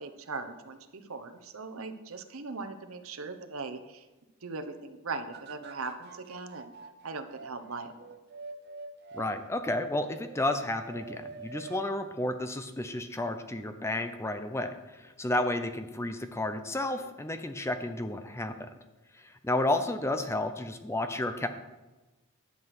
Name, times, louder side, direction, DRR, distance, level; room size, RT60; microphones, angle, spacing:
voice 1, 0.0-4.1 4.4-6.7 7.0-8.1, right 3 dB, 70° right, 7 dB, 1.0 m, -39 dB
sound 1, 5.3-9.4 9.9-11.9 12.3-12.4, right 4 dB, 45° right, 0.8 m, -46 dB
voice 2, 9.1-18.7 19.1-21.5, left 1 dB, 10° left, 8 dB, 0.5 m, -32 dB
11.0 x 7.7 x 6.0 m, 1.1 s
head